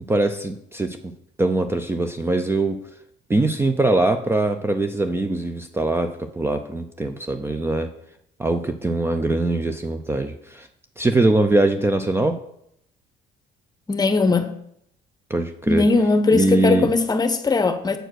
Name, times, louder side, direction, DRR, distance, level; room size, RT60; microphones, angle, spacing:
voice 1, 0.1-1.0 1.4-2.8 3.3-7.9 8.4-10.7 11.0-12.4 15.3-15.8 16.3-16.9, right 2 dB, 15° right, 0.5 m, -22 dB
voice 2, 13.9-14.5 15.7-18.0, left 3 dB, 25° left, 0.9 m, -19 dB
7.8 x 4.5 x 6.3 m
cardioid pair, 110°, 17 cm